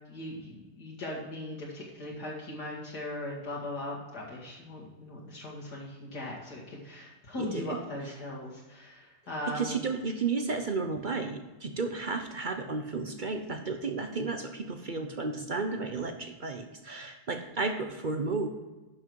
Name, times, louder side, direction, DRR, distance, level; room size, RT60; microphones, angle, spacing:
voice 1, 0.1-9.8, left 1 dB, 70° left, -4 dB, 2.5 m, -39 dB
voice 2, 7.4-7.8 9.5-18.5, right 4 dB, 45° right, 6 dB, 0.6 m, -33 dB
11.0 x 6.2 x 4.6 m, 1.2 s
omnidirectional pair, 1.8 m